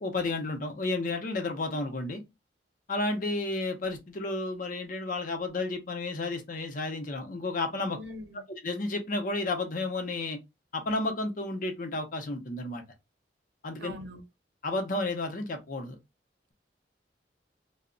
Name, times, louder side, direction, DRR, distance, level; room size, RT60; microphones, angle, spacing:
voice 1, 0.0-2.2 2.9-8.0 8.6-10.4 10.7-12.8 13.6-13.9 14.6-16.0, left 2 dB, 45° left, 0.6 m, -32 dB
voice 2, 7.9-8.5 13.8-14.2, equal, 75° right, 0.7 m, -42 dB
2.2 x 2.0 x 3.7 m
head